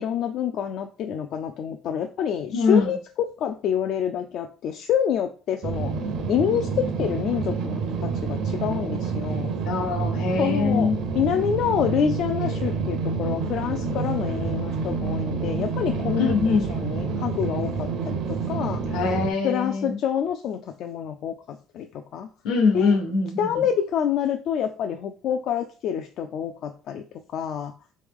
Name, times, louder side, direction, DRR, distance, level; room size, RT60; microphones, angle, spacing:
voice 1, 0.0-5.9 6.3-9.5 10.4-18.8 19.4-21.9 22.1-22.3 22.7-23.0 23.4-27.0 27.3-27.7, left 8 dB, 55° left, 6 dB, 0.3 m, -27 dB
voice 2, 2.5-3.0 9.7-11.0 16.2-16.7 18.9-20.0 22.4-23.5, left 4 dB, 80° left, 4 dB, 1.1 m, -23 dB
sound 1, 5.6-19.3, right 5 dB, 60° right, 0.7 m, -28 dB
3.8 x 3.1 x 3.5 m, 0.38 s
cardioid pair, 145°, 0 cm